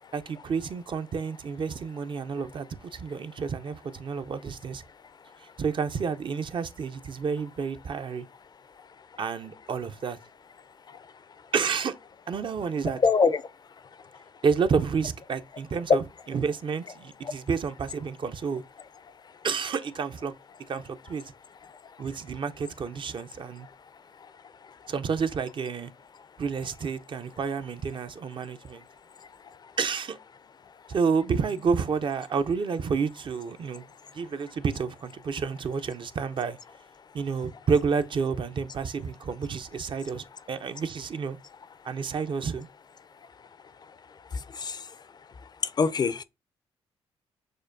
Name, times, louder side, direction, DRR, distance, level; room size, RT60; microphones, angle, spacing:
voice 1, 0.1-4.8 5.6-8.3 9.2-10.2 11.5-12.0 12.3-13.0 14.4-18.6 19.4-20.3 20.7-21.2 22.0-23.7 24.9-25.9 26.4-28.8 29.8-30.2 30.9-33.8 34.1-36.6 37.1-41.4 41.8-42.7, right 5 dB, 50° right, 0.5 m, -30 dB
voice 2, 13.0-13.4 15.9-16.0 45.8-46.2, left 5 dB, 40° left, 0.4 m, -21 dB
6.3 x 2.2 x 2.5 m
supercardioid pair, 55°, 11 cm